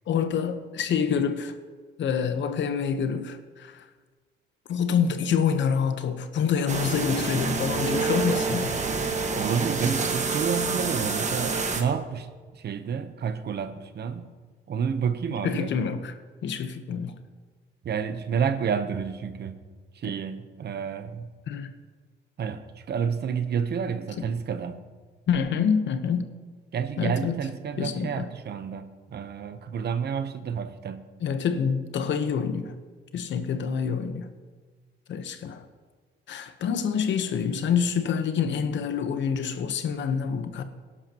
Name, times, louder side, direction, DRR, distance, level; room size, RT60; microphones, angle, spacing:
voice 1, 0.1-1.6 2.0-3.8 4.7-8.8 15.4-16.1 16.4-17.2 21.5-21.7 24.2-24.3 25.3-26.3 27.0-27.4 27.8-28.3 31.2-32.7 33.1-34.3 35.1-35.6 36.3-40.6, left 7 dB, 65° left, 1.0 m, -27 dB
sound 1, 6.7-11.8, right 4 dB, 35° right, 1.5 m, -27 dB
voice 2, 9.4-12.3 12.6-14.3 14.7-15.7 17.8-19.6 20.0-21.3 22.4-24.8 26.7-31.0, right 7 dB, 55° right, 0.9 m, -30 dB
18.0 x 11.5 x 3.0 m
cardioid pair, 90°, 20 cm